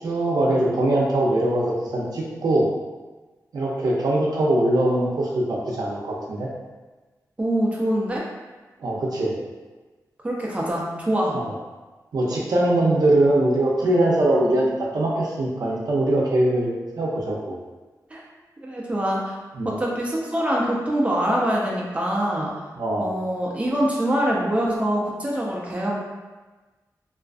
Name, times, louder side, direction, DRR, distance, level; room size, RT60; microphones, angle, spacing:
voice 1, 0.0-2.7 3.5-6.5 8.8-9.3 11.3-11.5 12.1-17.6 19.6-19.8 22.8-23.1, right 1 dB, 80° right, -3 dB, 0.5 m, -22 dB
voice 2, 7.4-8.3 10.2-11.4 18.1-18.2 18.6-19.4 19.6-22.5 23.0-25.9, right 1 dB, 20° right, -3 dB, 0.4 m, -24 dB
2.4 x 2.3 x 2.3 m, 1.2 s
wide cardioid pair, 120°, 7 cm